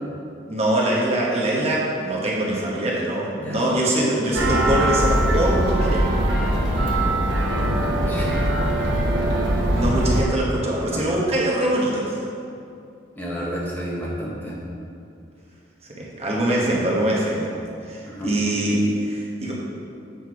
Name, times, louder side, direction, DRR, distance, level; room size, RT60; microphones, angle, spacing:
voice 1, 0.5-6.2 9.7-12.2 16.0-17.5 17.8-19.5, right 1 dB, 35° right, -4 dB, 1.1 m, -23 dB
sound 1, 4.3-10.2, right 1 dB, 70° right, 1.1 m, -21 dB
voice 2, 7.5-8.4 10.8-11.0 13.1-14.6 18.0-18.3, equal, 10° left, -6 dB, 1.1 m, -31 dB
7.7 x 4.4 x 4.7 m, 2.5 s
head